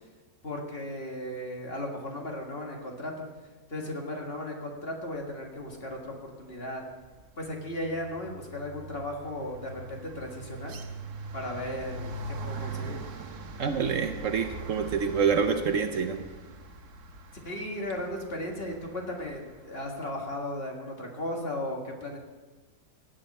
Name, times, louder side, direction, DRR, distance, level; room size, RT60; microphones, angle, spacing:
voice 1, 0.4-3.3 3.7-6.8 7.4-10.8 11.3-13.0 17.4-22.2, left 1 dB, 40° left, 0 dB, 1.9 m, -36 dB
sound 1, 6.0-6.4 6.7-19.8, right 2 dB, 80° right, 1.6 m, -42 dB
voice 2, 13.6-16.2, right 6 dB, 60° right, 7 dB, 1.1 m, -27 dB
17.0 x 9.2 x 4.2 m, 1.3 s
omnidirectional pair, 1.6 m